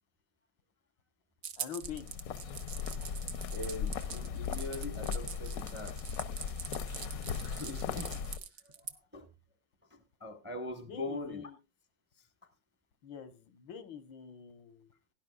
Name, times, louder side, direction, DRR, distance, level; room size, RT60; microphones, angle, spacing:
sound 1, 1.4-8.9, right 8 dB, 55° right, 0.9 m, -43 dB
voice 1, 1.6-2.1 10.9-11.6 13.0-14.9, left 7 dB, 90° left, 11 dB, 1.8 m, -45 dB
sound 2, 1.8-8.4, left 7 dB, 60° left, 1.0 m, -38 dB
voice 2, 3.5-6.0 7.4-8.1 8.6-8.9 9.1-9.3 9.9-11.5, left 2 dB, 10° right, 7 dB, 0.8 m, -42 dB
17.5 x 10.5 x 2.3 m, 0.24 s
omnidirectional pair, 2.0 m